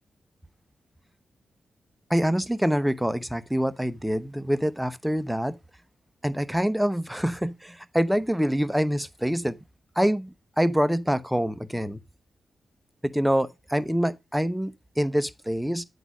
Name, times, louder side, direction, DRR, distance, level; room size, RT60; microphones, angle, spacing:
voice 1, 2.1-5.6 6.2-9.6 10.0-12.0 13.0-15.8, equal, 5° right, 0.9 m, -25 dB
9.4 x 4.0 x 6.0 m
supercardioid pair, 50°, 0 cm